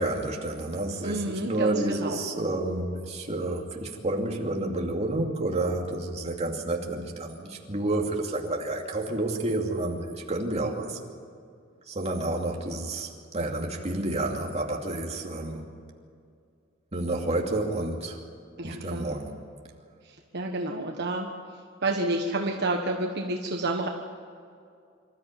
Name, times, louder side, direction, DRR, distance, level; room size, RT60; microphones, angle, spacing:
voice 1, 0.0-11.0 11.9-15.7 16.9-18.2 18.6-19.4, right 2 dB, 35° right, 1 dB, 2.6 m, -30 dB
voice 2, 1.0-2.2 18.6-19.1 20.3-21.3 21.8-23.9, right 2 dB, 55° right, 2 dB, 1.4 m, -29 dB
26.0 x 13.5 x 9.2 m, 2.3 s
head